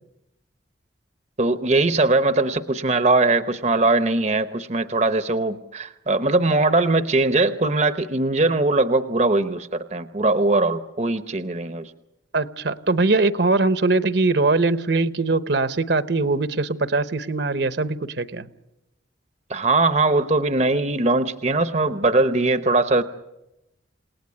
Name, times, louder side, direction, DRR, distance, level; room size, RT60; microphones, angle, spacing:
voice 1, 1.4-11.9 19.5-23.0, right 2 dB, 35° right, 10 dB, 0.8 m, -21 dB
voice 2, 12.3-18.5, right 3 dB, 60° right, 12 dB, 1.0 m, -21 dB
28.5 x 18.5 x 9.6 m, 0.94 s
head